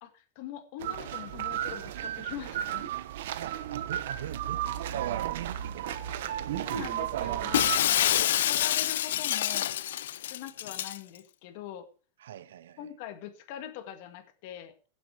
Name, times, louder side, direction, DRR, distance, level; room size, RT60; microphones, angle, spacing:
voice 1, 0.0-2.9 5.8-6.0 6.6-9.7 10.3-11.9 12.8-14.7, left 11 dB, 45° left, 1.9 m, -43 dB
sound 1, 0.8-7.8, right 11 dB, 60° right, 1.1 m, -33 dB
voice 2, 3.4-6.0 6.4-6.6 12.2-12.9, right 11 dB, 90° right, 0.9 m, -42 dB
Shatter, 7.5-11.0, left 12 dB, 75° left, 0.5 m, -27 dB
16.0 x 7.7 x 4.9 m
supercardioid pair, 175°, 0 cm